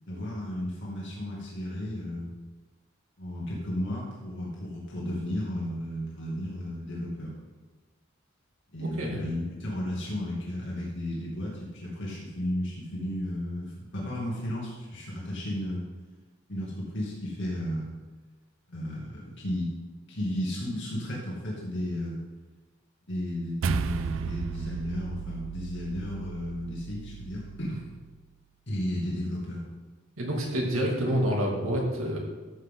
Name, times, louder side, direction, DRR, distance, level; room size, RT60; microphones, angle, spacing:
voice 1, 0.1-2.3 3.2-7.3 8.7-15.8 16.5-17.9 18.7-19.7 20.1-22.2 23.1-27.8 28.7-29.6, left 1 dB, 60° left, -5 dB, 2.3 m, -33 dB
voice 2, 8.8-9.2 30.2-32.2, equal, 85° right, -2 dB, 2.4 m, -28 dB
sound 1, 23.6-28.2, right 6 dB, 65° right, 0.4 m, -35 dB
13.0 x 7.5 x 3.8 m, 1.3 s
head